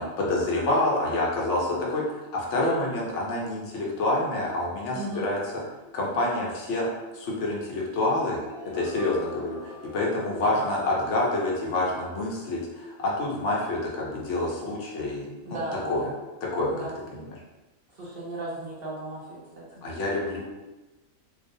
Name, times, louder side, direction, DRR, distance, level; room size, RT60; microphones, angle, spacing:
voice 1, 0.0-5.4 5.9-6.9 7.1-8.4 8.7-15.6 15.9-16.0 16.5-16.9 17.1-17.2 19.8-20.4, left 2 dB, 60° left, -3 dB, 0.9 m, -27 dB
voice 2, 4.9-5.3 10.4-10.6 15.4-16.2 16.7-16.9 18.0-19.6, right 1 dB, 60° right, -7 dB, 0.6 m, -35 dB
sound 1, 8.4-12.3, equal, 20° left, 0.6 m, -45 dB
2.5 x 2.1 x 2.6 m, 1.1 s
omnidirectional pair, 1.5 m